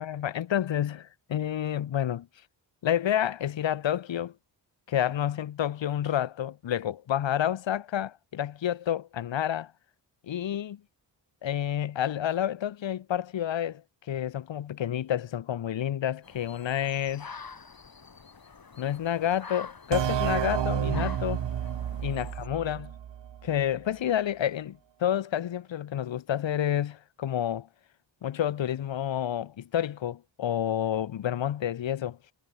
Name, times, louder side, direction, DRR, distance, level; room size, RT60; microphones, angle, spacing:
voice 1, 0.0-2.3 2.8-4.3 4.9-9.7 10.2-10.8 11.4-13.8 14.1-17.3 18.8-21.4 22.0-22.9 23.4-27.7 28.2-32.2, left 10 dB, 75° left, 1.2 m, -29 dB
sound 1, 16.2-22.5, left 5 dB, 50° left, 7.9 m, -47 dB
sound 2, 19.9-23.5, right 9 dB, 70° right, 1.3 m, -30 dB
cardioid pair, 60°, 46 cm